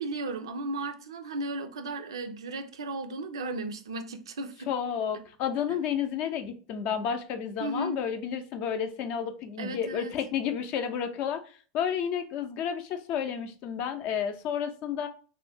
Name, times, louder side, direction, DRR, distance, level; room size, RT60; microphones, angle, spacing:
voice 1, 0.0-4.7 7.6-8.1 9.6-10.2, right 2 dB, 85° right, 0.3 m, -35 dB
voice 2, 4.7-11.4 11.7-15.1, left 8 dB, 55° left, 0.4 m, -31 dB
2.6 x 2.1 x 3.4 m
hypercardioid pair, 95°, 3 cm